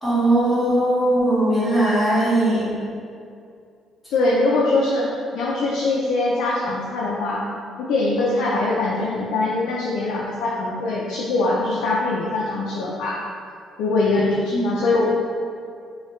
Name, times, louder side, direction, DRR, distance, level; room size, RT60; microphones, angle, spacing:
voice 1, 0.0-2.7 14.5-14.6, right 1 dB, 10° left, -11 dB, 1.2 m, -19 dB
voice 2, 4.1-7.4 7.8-13.1 13.8-15.0, left 2 dB, 90° left, -5 dB, 0.4 m, -22 dB
3.0 x 2.3 x 3.0 m, 2.4 s
cardioid pair, 125°, 0 cm